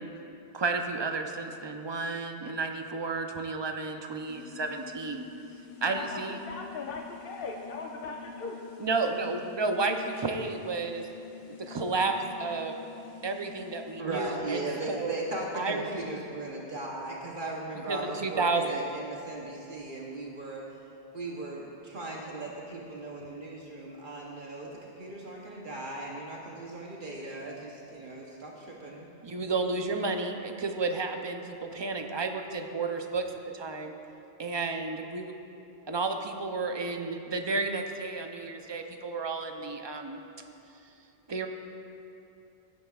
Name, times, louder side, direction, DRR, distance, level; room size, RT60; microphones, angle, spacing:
voice 1, 0.5-5.2 5.8-6.4 8.8-11.1 11.5-12.7 13.2-15.2 15.5-15.9 17.9-18.8 29.2-33.3 33.5-33.9 34.4-35.3 35.9-40.2 41.3-41.5, right 3 dB, 35° right, 5 dB, 0.5 m, -32 dB
sound 1, 4.3-14.0, left 7 dB, 85° left, 1.0 m, -47 dB
voice 2, 5.9-8.6, left 4 dB, 70° left, 2 dB, 0.8 m, -39 dB
voice 3, 14.0-20.7 21.1-29.1, right 2 dB, 55° right, -2 dB, 1.0 m, -37 dB
16.0 x 9.2 x 2.4 m, 2.8 s
omnidirectional pair, 1.1 m